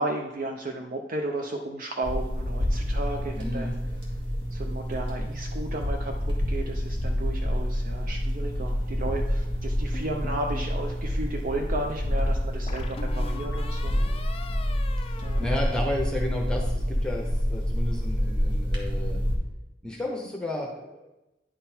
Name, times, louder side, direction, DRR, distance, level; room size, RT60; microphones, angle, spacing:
voice 1, 0.0-3.7 4.5-13.9 15.2-15.5, right 2 dB, 50° right, 2 dB, 0.6 m, -34 dB
sound 1, 2.0-19.4, equal, 70° right, 1.8 m, -28 dB
voice 2, 3.3-3.8 15.0-17.2 17.5-19.2 19.8-21.1, left 1 dB, 5° left, 0 dB, 0.8 m, -32 dB
sound 2, 9.9-10.8 12.7-16.3, left 4 dB, 35° left, 0.4 m, -42 dB
9.8 x 3.7 x 4.4 m, 0.98 s
head